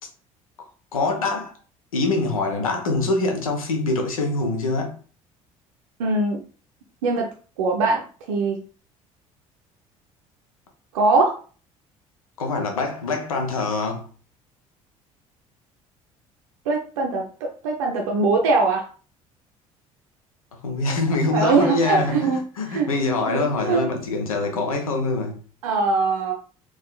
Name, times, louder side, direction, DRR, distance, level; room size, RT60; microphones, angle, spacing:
voice 1, 0.9-1.5 1.9-5.0 12.4-14.1 20.6-25.4, left 3 dB, 80° left, 0.6 m, -24 dB
voice 2, 6.0-6.4 7.0-7.3 7.6-8.0 8.3-8.6 10.9-11.4 16.7-17.2 17.6-18.8 21.3-22.4 22.7-22.9 23.3-23.8 25.6-26.3, right 3 dB, 70° right, 0.5 m, -21 dB
3.5 x 3.1 x 2.2 m
figure-of-eight pair, 55°, 18 cm